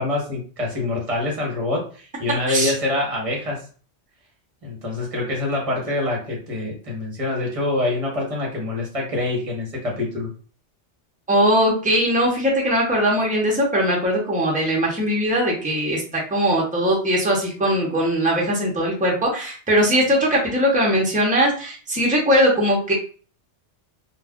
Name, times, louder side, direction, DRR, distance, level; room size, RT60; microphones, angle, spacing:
voice 1, 0.0-3.6 4.6-10.3, left 2 dB, 30° right, -2 dB, 1.0 m, -25 dB
voice 2, 11.3-22.9, equal, 10° right, -2 dB, 0.6 m, -20 dB
2.3 x 2.3 x 3.5 m, 0.40 s
omnidirectional pair, 1.2 m